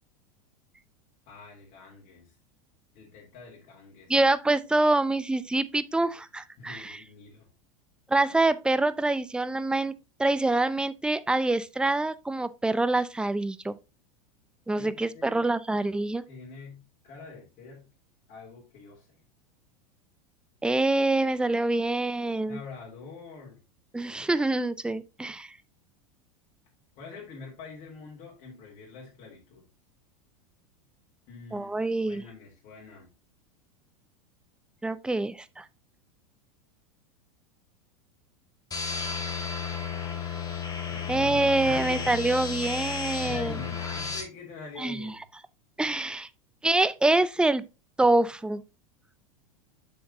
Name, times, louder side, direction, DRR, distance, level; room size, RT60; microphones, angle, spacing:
voice 1, 1.3-2.3 2.9-4.3 6.6-7.5 14.8-15.5 16.3-17.9 18.3-19.2 22.5-23.6 27.0-29.7 31.3-33.1 40.9-42.2 43.0-45.2, left 4 dB, 45° left, 3.2 m, -45 dB
voice 2, 4.1-7.0 8.1-9.9 10.2-13.7 14.7-16.2 20.6-22.6 23.9-25.5 31.5-32.2 34.8-35.6 41.1-43.6 44.8-45.1 45.8-46.3 46.6-47.6 48.0-48.6, right 2 dB, 5° right, 0.5 m, -25 dB
sound 1, 38.7-44.2, left 6 dB, 20° left, 2.5 m, -33 dB
7.5 x 6.9 x 2.8 m
hypercardioid pair, 90°, 19 cm